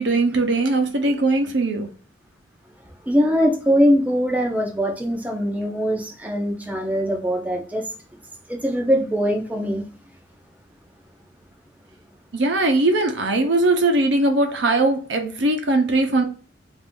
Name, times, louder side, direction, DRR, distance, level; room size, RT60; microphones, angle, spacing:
voice 1, 0.0-1.9 12.3-16.2, right 2 dB, 75° right, 0.7 m, -20 dB
voice 2, 3.0-7.9 8.5-9.9, equal, 10° right, 0.5 m, -21 dB
2.6 x 2.5 x 3.6 m
head